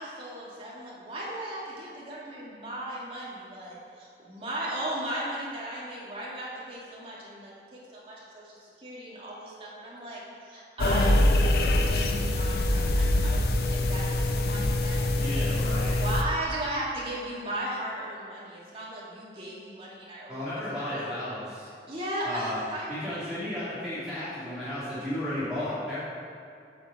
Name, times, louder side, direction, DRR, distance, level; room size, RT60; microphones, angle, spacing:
voice 1, 0.0-13.5 13.7-20.4 20.8-21.1 21.9-23.2, right 1 dB, 30° right, -7 dB, 2.4 m, -37 dB
sound 1, 10.8-16.2, left 1 dB, 60° left, 0.7 m, -24 dB
voice 2, 15.1-16.0 20.3-21.7 22.2-22.6 22.9-26.0, left 1 dB, 5° right, -14 dB, 2.8 m, -33 dB
8.4 x 6.0 x 7.8 m, 2.5 s
head